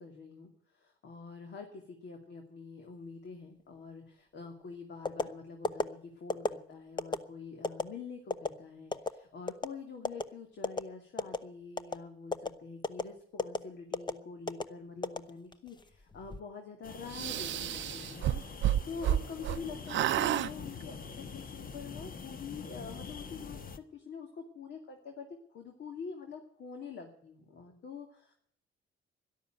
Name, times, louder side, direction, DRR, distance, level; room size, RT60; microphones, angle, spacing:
voice 1, 0.0-23.6 23.9-28.3, left 5 dB, 65° left, 3 dB, 2.6 m, -46 dB
sound 1, 5.0-5.3 5.6-5.8 6.3-6.5 7.0-7.2 7.6-7.8 8.3-8.5 8.9-9.1 9.5-9.7 10.0-10.2 10.6-10.8 11.2-11.4 11.8-12.0 12.3-12.5 12.8-13.0 13.4-13.6 13.9-14.1 14.5-14.6 15.0-15.7 16.1-16.4, left 3 dB, 20° left, 0.9 m, -31 dB
sound 2, 16.8-23.8, left 5 dB, 45° left, 1.3 m, -45 dB
sound 3, 17.1-19.6 19.9-20.5, right 12 dB, 70° right, 0.6 m, -30 dB
12.5 x 11.5 x 9.0 m, 0.64 s
cardioid pair, 90°, 20 cm